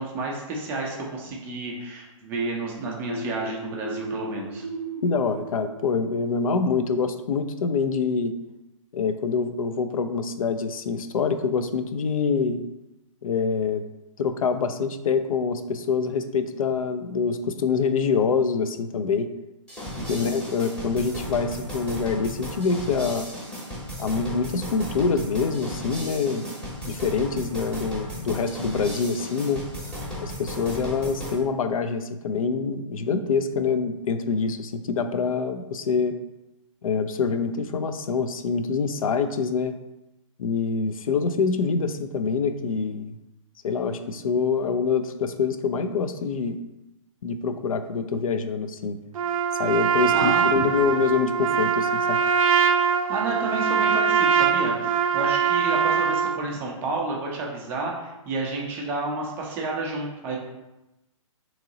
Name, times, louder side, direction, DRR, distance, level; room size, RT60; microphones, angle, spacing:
voice 1, 0.0-4.6 20.0-20.3 50.1-50.7 53.1-60.4, right 3 dB, 10° right, -2 dB, 0.4 m, -30 dB
sound 1, 3.1-6.7, right 1 dB, 55° left, 0.9 m, -36 dB
voice 2, 5.0-8.3 8.9-12.6 13.2-13.8 14.2-19.3 20.1-23.3 24.0-26.4 26.8-29.6 30.2-36.2 36.8-39.7 40.4-43.2 43.6-46.6 47.2-49.0 49.6-52.2, left 5 dB, 80° left, 9 dB, 0.4 m, -25 dB
sound 2, 19.7-31.4, equal, 5° left, 0.8 m, -35 dB
Trumpet, 49.1-56.4, right 7 dB, 80° right, 0.4 m, -22 dB
2.9 x 2.7 x 3.8 m, 0.97 s
hypercardioid pair, 155°, 17 cm